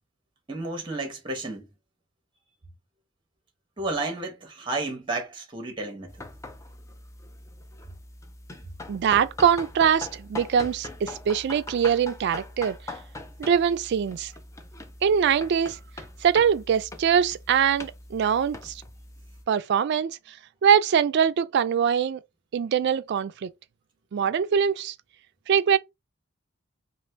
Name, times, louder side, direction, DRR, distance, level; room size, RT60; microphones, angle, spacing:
voice 1, 0.5-1.7 3.8-6.2, right 2 dB, 25° right, 0.9 m, -32 dB
sound 1, 6.1-19.4, left 2 dB, 15° left, 0.4 m, -42 dB
voice 2, 8.9-12.8 13.4-14.3 15.0-15.8 16.2-18.8 19.5-20.4 20.6-22.2 22.5-23.5 24.1-24.9 25.5-25.8, right 7 dB, 55° right, 0.3 m, -23 dB
2.6 x 2.5 x 3.2 m
head